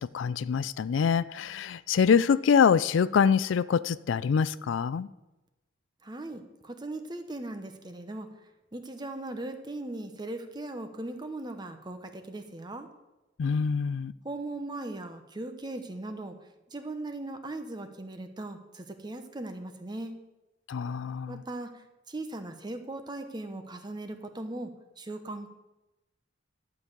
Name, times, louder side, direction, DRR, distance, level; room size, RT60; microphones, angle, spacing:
voice 1, 0.0-5.1 13.4-14.1 20.7-21.4, left 6 dB, 75° left, 17 dB, 0.4 m, -25 dB
voice 2, 6.0-8.3 8.7-12.9 14.2-16.4 16.7-20.2 21.3-25.5, right 2 dB, 20° right, 7 dB, 0.9 m, -39 dB
11.5 x 5.4 x 8.2 m, 1.0 s
head